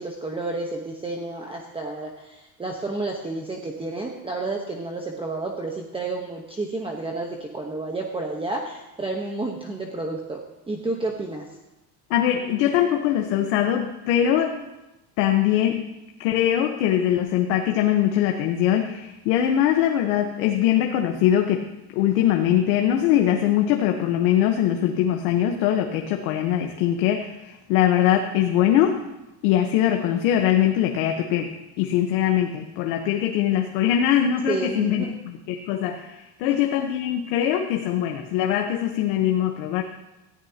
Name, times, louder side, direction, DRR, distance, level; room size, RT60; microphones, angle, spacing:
voice 1, 0.0-10.4 10.7-11.5 34.5-35.1, right 2 dB, 10° right, 1 dB, 1.1 m, -30 dB
voice 2, 12.1-14.6 15.2-15.8 16.2-21.7 21.9-29.0 29.4-35.2 35.5-39.8, left 11 dB, 90° left, 3 dB, 1.3 m, -22 dB
18.5 x 14.0 x 2.9 m, 0.98 s
cardioid pair, 145°, 50 cm